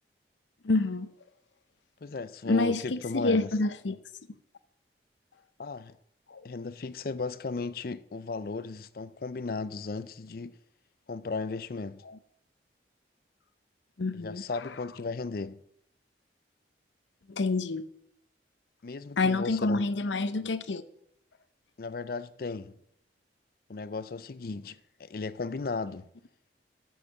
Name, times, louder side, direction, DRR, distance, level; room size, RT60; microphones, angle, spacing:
voice 1, 0.6-1.1 2.5-4.0 6.3-6.4 14.0-14.4 17.3-17.9 19.2-20.8, left 3 dB, 85° left, 0.7 m, -27 dB
voice 2, 2.0-3.5 5.6-6.0 6.4-10.5 11.1-12.0 14.1-15.6 18.8-19.8 21.8-22.7 23.7-26.1, left 4 dB, 50° left, 0.5 m, -35 dB
10.0 x 6.5 x 7.3 m
head